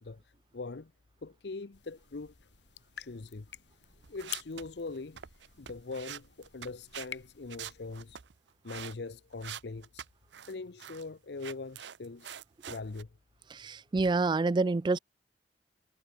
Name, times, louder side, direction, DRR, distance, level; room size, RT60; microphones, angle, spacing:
voice 1, 0.0-0.9 1.2-2.3 3.0-3.5 4.1-5.2 5.6-8.2 8.6-10.0 10.5-12.4 12.7-13.1, left 3 dB, 65° left, 0.7 m, -42 dB
sound 1, 1.7-8.2, left 10 dB, 85° left, 4.0 m, -49 dB
sound 2, 4.0-7.1 7.5-8.9 9.4-10.5 10.8-11.1 11.4-13.0, right 9 dB, 80° right, 0.8 m, -45 dB
voice 2, 13.5-15.0, right 3 dB, 25° right, 0.3 m, -27 dB
head